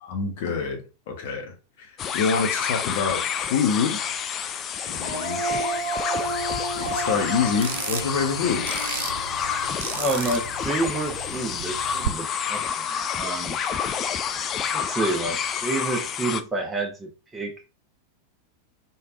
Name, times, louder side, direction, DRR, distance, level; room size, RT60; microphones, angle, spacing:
voice 1, 0.0-4.0 4.9-5.4 6.8-8.7, left 5 dB, 50° left, 0.9 m, -26 dB
sound 1, 2.0-16.4, left 8 dB, 30° left, 0.3 m, -29 dB
Female singing, 4.9-10.1, right 2 dB, 80° left, 0.6 m, -32 dB
sound 2, 6.2-12.1, right 9 dB, 60° right, 0.3 m, -35 dB
voice 2, 9.9-13.6 14.7-17.7, right 2 dB, 15° right, 0.9 m, -29 dB
3.3 x 2.4 x 2.4 m
figure-of-eight pair, 90°, 0 cm